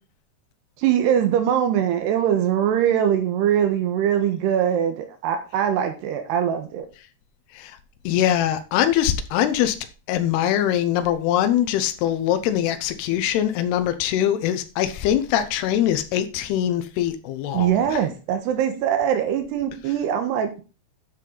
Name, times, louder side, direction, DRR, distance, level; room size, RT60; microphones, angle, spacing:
voice 1, 0.8-6.9 17.5-20.6, right 9 dB, 90° right, 3.4 m, -22 dB
voice 2, 8.0-9.8 10.1-18.0, left 11 dB, 80° left, 2.9 m, -22 dB
10.5 x 7.7 x 3.9 m
omnidirectional pair, 4.6 m